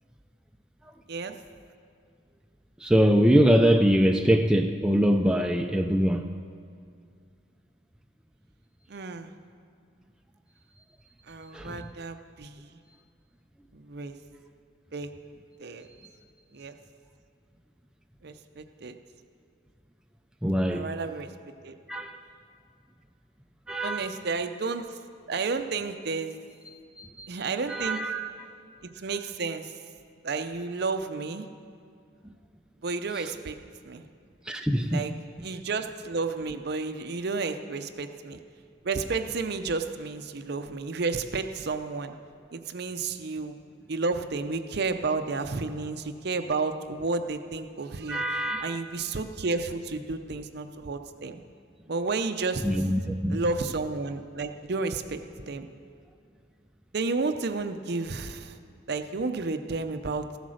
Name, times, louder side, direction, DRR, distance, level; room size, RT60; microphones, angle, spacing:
voice 1, 2.8-6.3 11.5-11.9 20.4-20.9 21.9-22.2 23.7-24.2 27.0-27.3 27.7-28.3 33.2-33.3 34.5-35.0 48.1-48.8 52.6-53.4, equal, 5° right, 4 dB, 0.3 m, -23 dB
voice 2, 8.9-9.3 11.3-12.7 13.7-14.2 14.9-15.1 15.6-15.9 16.5-16.8 18.2-19.0 20.7-21.3 21.6-21.8 23.8-24.9 25.3-26.3 27.3-28.0 28.8-29.7 30.2-31.5 32.8-33.6 33.8-34.0 34.9-35.1 35.4-38.4 38.8-42.1 42.5-43.6 43.9-51.4 51.9-52.7 53.3-55.2 55.5-55.7 56.9-58.5 58.9-60.3, right 4 dB, 55° right, 8 dB, 0.6 m, -31 dB
14.5 x 8.2 x 6.3 m, 2.3 s
head